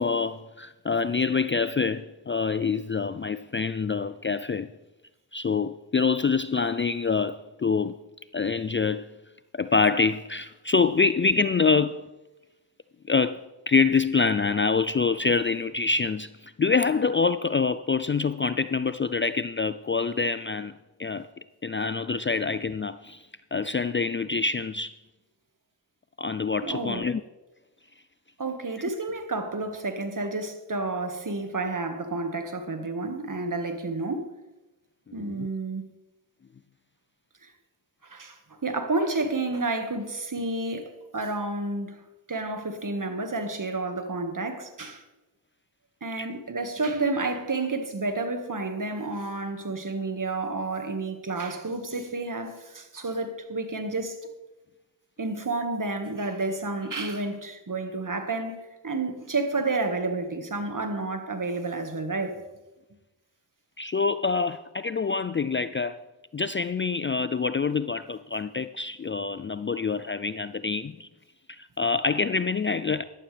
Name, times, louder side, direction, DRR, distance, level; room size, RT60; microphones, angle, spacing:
voice 1, 0.0-4.7 5.3-8.0 8.3-9.1 9.5-12.0 13.1-20.7 21.0-21.3 21.6-23.2 23.5-24.9 26.2-27.2 35.1-35.5 46.2-46.3 63.8-66.0 66.3-71.1 71.5-73.0, left 4 dB, 30° left, 0.4 m, -26 dB
voice 2, 26.6-27.1 28.4-34.3 35.1-35.9 37.4-37.5 38.0-42.0 42.3-45.0 46.0-54.2 55.2-58.6 58.8-62.4, right 3 dB, 45° right, 1.8 m, -30 dB
14.5 x 12.0 x 3.4 m
cardioid pair, 40°, 44 cm